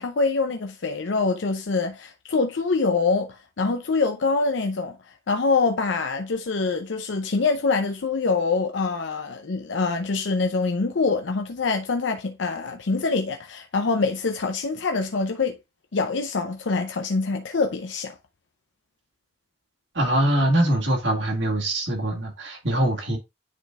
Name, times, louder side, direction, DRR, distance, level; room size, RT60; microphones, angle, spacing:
voice 1, 0.0-5.0 5.3-15.6 15.9-18.2, left 4 dB, 75° left, 0.6 m, -25 dB
voice 2, 19.9-23.2, right 1 dB, 75° right, 2.1 m, -23 dB
9.8 x 4.0 x 2.4 m
head